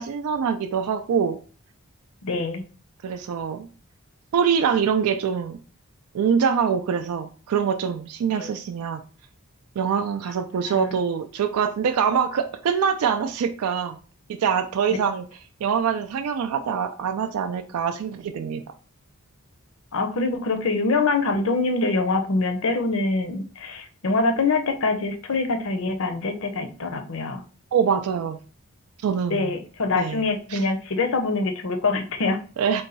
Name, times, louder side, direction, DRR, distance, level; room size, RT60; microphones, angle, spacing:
voice 1, 0.0-1.4 3.0-3.7 4.3-5.6 6.1-9.0 9.8-14.0 14.3-15.2 15.6-18.6 27.7-28.4 29.0-29.5 30.0-30.2 30.5-30.7 32.6-32.8, right 7 dB, 80° right, 7 dB, 0.3 m, -24 dB
voice 2, 2.2-2.6 8.3-8.5 10.7-11.0 19.9-27.4 29.3-32.4, left 3 dB, 60° left, 6 dB, 0.6 m, -24 dB
3.9 x 2.2 x 4.0 m, 0.38 s
head